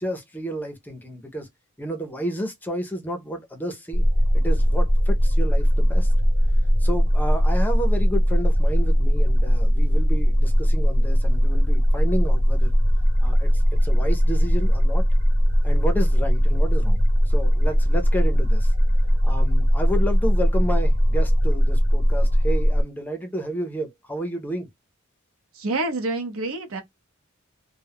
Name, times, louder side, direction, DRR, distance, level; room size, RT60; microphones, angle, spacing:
voice 1, 0.0-1.5 1.8-4.0 4.3-6.1 6.8-12.7 13.2-15.0 15.6-18.7 19.2-24.7, right 1 dB, 10° left, 0.5 m, -31 dB
sound 1, 3.9-22.8, equal, 50° right, 0.9 m, -19 dB
voice 2, 25.5-26.8, right 2 dB, 80° right, 0.7 m, -27 dB
2.2 x 2.0 x 3.4 m
head